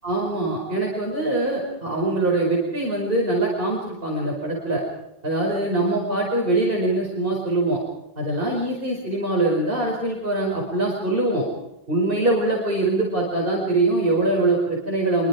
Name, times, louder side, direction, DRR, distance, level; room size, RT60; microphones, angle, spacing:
voice 1, 0.0-4.8 5.2-7.8 8.2-11.4 11.9-15.3, right 2 dB, 60° right, -3 dB, 5.5 m, -23 dB
26.0 x 24.5 x 5.0 m, 0.95 s
omnidirectional pair, 1.0 m